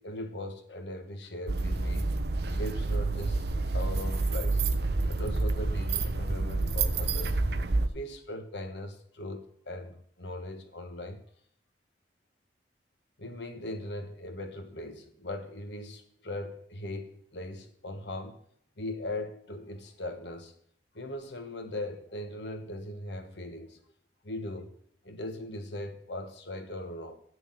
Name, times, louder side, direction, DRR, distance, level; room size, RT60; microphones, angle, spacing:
voice 1, 0.0-2.1 2.5-3.4 3.7-4.6 5.1-7.4 7.9-11.2 13.2-18.4 18.8-20.5 20.9-23.8 24.2-24.7 25.0-27.2, left 1 dB, 85° left, 1.4 m, -39 dB
sound 1, 1.5-7.9, right 3 dB, 65° right, 0.7 m, -28 dB
7.1 x 6.4 x 7.5 m
head